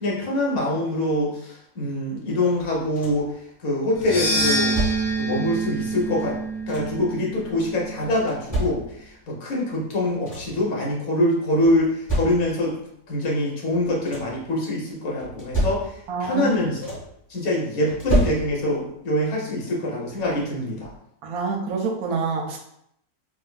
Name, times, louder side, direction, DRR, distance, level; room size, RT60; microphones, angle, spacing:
voice 1, 0.0-3.3 3.6-4.8 5.2-6.4 6.7-12.8 13.1-15.9 16.2-17.0 17.3-20.9, left 1 dB, 70° left, -3 dB, 1.3 m, -24 dB
sound 1, 2.6-3.4 4.3-5.3 6.2-7.1 8.0-9.2 9.8-9.9 10.1-10.7 11.6-12.8 13.7-14.5 15.2-16.2 16.5-17.2 17.9-18.9 20.2-20.3 20.8-21.0, right 1 dB, 15° left, 1.0 m, -29 dB
sound 2, 3.9-8.3, right 2 dB, 55° left, 0.5 m, -27 dB
voice 2, 16.1-16.5 21.2-22.6, right 5 dB, 90° right, 1 dB, 1.1 m, -26 dB
3.6 x 2.3 x 2.3 m, 0.74 s
omnidirectional pair, 1.5 m